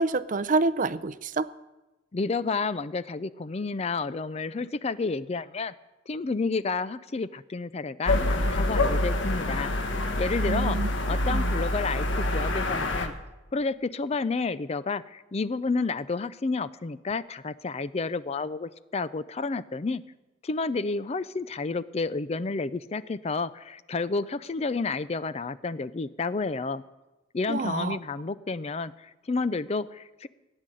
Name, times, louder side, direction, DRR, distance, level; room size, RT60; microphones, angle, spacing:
voice 1, 0.0-1.5 10.5-10.9 11.2-11.6 27.5-28.0, right 3 dB, 45° right, 16 dB, 0.5 m, -27 dB
voice 2, 2.1-5.7 6.1-10.8 11.1-13.1 13.5-20.0 20.4-26.8 27.3-30.3, left 4 dB, 35° left, 16 dB, 0.4 m, -30 dB
sound 1, 8.1-13.1, left 1 dB, 80° left, 1.5 m, -26 dB
16.5 x 9.9 x 7.7 m, 1.0 s
head